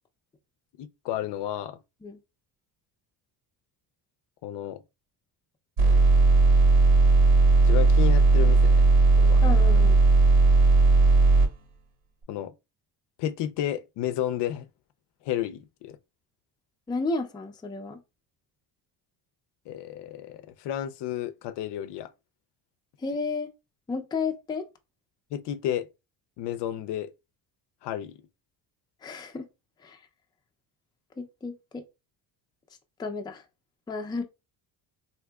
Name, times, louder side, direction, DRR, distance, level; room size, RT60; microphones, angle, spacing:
voice 1, 0.8-1.8 4.4-4.8 7.6-8.9 9.2-9.4 9.7-9.9 12.3-12.5 13.2-14.7 15.3-16.0 19.7-22.1 25.3-25.9 26.4-27.1 27.8-28.1, left 11 dB, 65° left, 0.5 m, -32 dB
sound 1, 5.8-11.5, right 3 dB, 85° right, 1.7 m, -17 dB
voice 2, 9.4-9.9 16.9-18.0 23.0-23.5 23.9-24.7 29.0-29.5 29.8-30.0 31.2-31.8 33.0-33.4 33.9-34.2, left 4 dB, 10° left, 0.4 m, -32 dB
3.5 x 2.8 x 2.2 m
cardioid pair, 105°, 45 cm